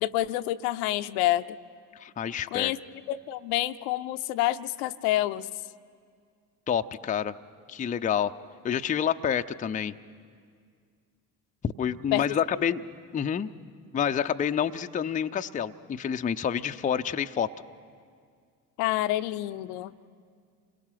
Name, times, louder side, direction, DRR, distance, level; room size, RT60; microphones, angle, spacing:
voice 1, 0.0-1.6 2.5-2.8 3.1-5.5 12.1-12.2 18.8-19.9, left 15 dB, 55° left, 12 dB, 0.7 m, -28 dB
voice 2, 1.9-2.7 6.7-7.3 7.7-8.3 8.6-9.9 11.6-12.8 13.1-13.5 13.9-17.5, left 8 dB, 15° left, 8 dB, 0.6 m, -28 dB
28.0 x 22.0 x 5.9 m, 2.1 s
figure-of-eight pair, 55°, 46 cm